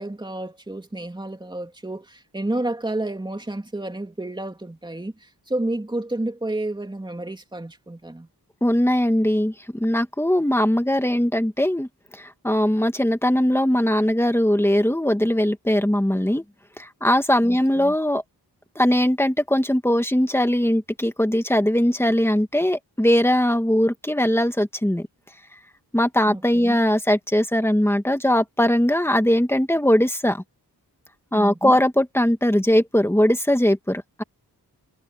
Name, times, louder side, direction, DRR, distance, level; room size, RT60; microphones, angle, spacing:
voice 1, 0.0-5.1 5.5-8.3 17.4-17.9 26.3-26.8 31.3-31.8, right 1 dB, 10° right, 3.0 m, -30 dB
voice 2, 8.6-11.9 12.4-16.4 16.8-18.2 18.8-25.1 25.9-30.4 31.3-34.2, equal, 5° left, 1.9 m, -20 dB
wide cardioid pair, 150°, 40 cm